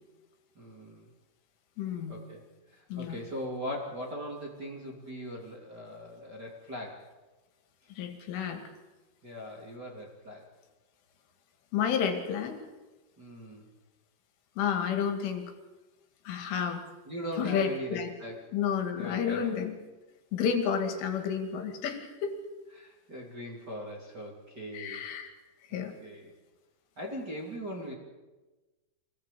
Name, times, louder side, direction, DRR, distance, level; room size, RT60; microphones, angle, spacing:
voice 1, 0.5-1.1 2.1-2.5 2.7-7.0 9.2-10.5 13.2-13.7 17.1-18.4 18.9-19.5 22.7-25.1 25.7-26.3 27.0-28.0, equal, 25° right, -1 dB, 2.4 m, -40 dB
voice 2, 1.8-2.2 2.9-3.2 7.9-8.6 11.7-12.6 14.6-15.5 16.3-16.8 17.4-18.1 18.5-19.8 20.3-22.4 24.7-25.3 25.7-25.9, left 7 dB, 80° left, 6 dB, 4.7 m, -31 dB
25.0 x 18.0 x 8.4 m, 1.2 s
omnidirectional pair, 5.6 m